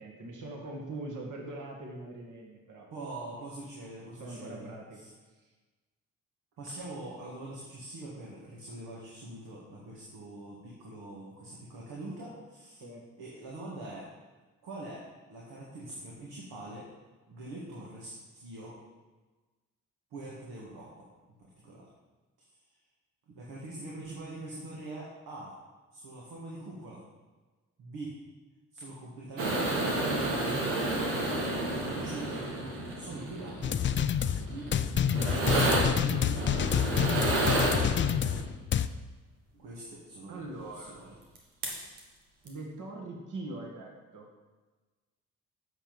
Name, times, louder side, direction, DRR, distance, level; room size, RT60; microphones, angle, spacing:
voice 1, 0.0-2.9 4.2-5.0 5.3-5.5 12.8-13.1 40.3-41.0 42.4-44.3, right 2 dB, 45° right, -1 dB, 2.0 m, -42 dB
voice 2, 2.9-5.1 6.6-12.8 13.2-14.1 14.6-15.0 15.3-16.9 17.3-18.7 20.1-21.1 21.4-21.8 23.3-25.5 25.9-27.0 27.8-28.2 28.7-31.3 32.0-32.3 33.0-33.8 34.4-34.7 35.5-37.6 39.5-40.4 40.7-41.1, right 2 dB, 65° right, -4 dB, 2.0 m, -43 dB
sound 1, 29.4-38.4 41.4-41.5 41.6-42.0 42.5-42.6, right 2 dB, 85° right, 1.4 m, -31 dB
sound 2, 33.6-38.9, left 8 dB, 30° left, 0.4 m, -28 dB
8.2 x 6.3 x 5.5 m, 1.3 s
hypercardioid pair, 45°, 41 cm